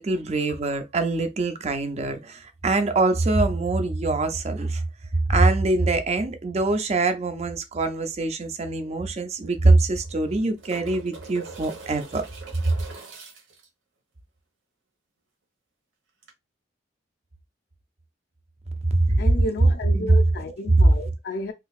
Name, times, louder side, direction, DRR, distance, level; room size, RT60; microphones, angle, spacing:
voice 1, 0.0-4.8 5.3-12.2 18.9-19.2 19.9-20.2, right 2 dB, 35° right, 0.5 m, -23 dB
sound 1, 8.5-8.6 8.8-8.9 9.9-13.7 16.2-16.3, right 4 dB, 85° right, 1.2 m, -43 dB
voice 2, 19.2-21.5, left 1 dB, 60° left, 0.4 m, -32 dB
3.8 x 2.7 x 2.4 m
head